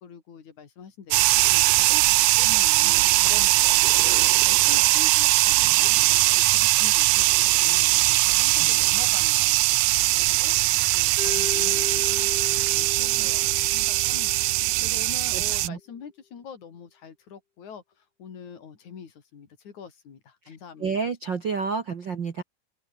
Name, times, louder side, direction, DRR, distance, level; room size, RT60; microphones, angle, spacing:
voice 1, 0.0-10.0 10.4-10.5 10.9-12.0 12.3-21.1, left 7 dB, 50° left, 4.3 m, -45 dB
sound 1, 1.1-15.7, right 19 dB, 85° right, 1.8 m, -20 dB
Mallet percussion, 11.2-15.3, left 7 dB, 75° left, 5.8 m, -38 dB
voice 2, 15.3-15.8 20.4-22.4, right 5 dB, 55° right, 1.3 m, -30 dB
open air
omnidirectional pair, 4.4 m